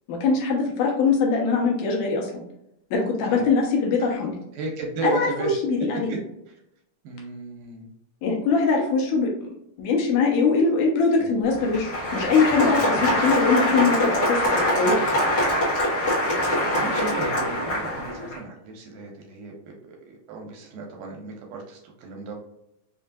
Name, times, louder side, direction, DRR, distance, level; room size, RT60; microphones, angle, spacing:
voice 1, 0.1-2.4 2.9-4.3 5.0-6.1 8.2-9.5 9.8-15.2, left 4 dB, 75° left, 0 dB, 2.4 m, -22 dB
voice 2, 4.5-5.5 5.8-6.2 6.5-6.6 7.0-7.9 11.2-11.4 12.8-13.1 16.3-22.4, right 3 dB, 85° right, 0 dB, 2.2 m, -35 dB
Applause, 11.4-18.4, left 1 dB, 55° left, 1.1 m, -24 dB
5.5 x 2.5 x 2.3 m, 0.80 s
omnidirectional pair, 3.8 m